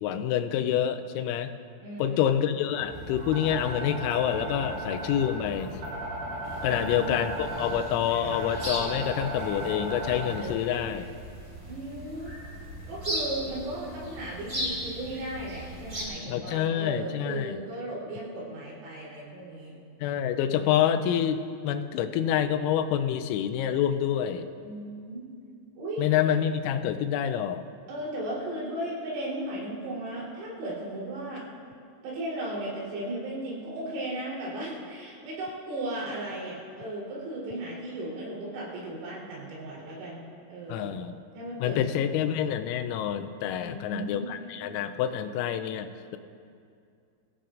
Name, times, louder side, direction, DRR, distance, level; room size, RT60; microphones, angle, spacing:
voice 1, 0.0-1.5 2.0-5.8 6.6-11.1 16.2-17.6 20.0-24.5 26.0-27.7 40.7-41.1 41.6-46.2, left 9 dB, 85° left, 8 dB, 3.4 m, -27 dB
voice 2, 1.8-2.3 6.7-7.2 11.6-12.4 12.9-19.7 24.6-25.2 25.8-26.1 27.9-31.5 32.0-41.0 41.4-42.3 43.6-44.3, right 1 dB, 80° right, -6 dB, 6.5 m, -36 dB
sound 1, 2.7-10.5, right 1 dB, 55° right, 6.4 m, -36 dB
sound 2, 6.4-16.0, equal, 15° right, 2.2 m, -38 dB
23.5 x 15.5 x 2.6 m, 2.4 s
omnidirectional pair, 6.0 m